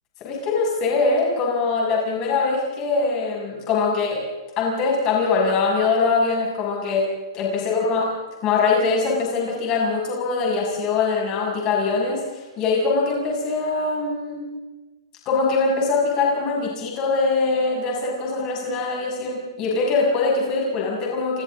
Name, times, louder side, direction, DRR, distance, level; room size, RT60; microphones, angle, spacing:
voice 1, 0.2-4.2 4.6-7.1 7.3-8.1 8.4-12.2 12.6-14.5 15.2-21.4, left 4 dB, 20° left, -3 dB, 6.5 m, -22 dB
29.0 x 25.0 x 3.9 m, 1.2 s
hypercardioid pair, 175°, 3 cm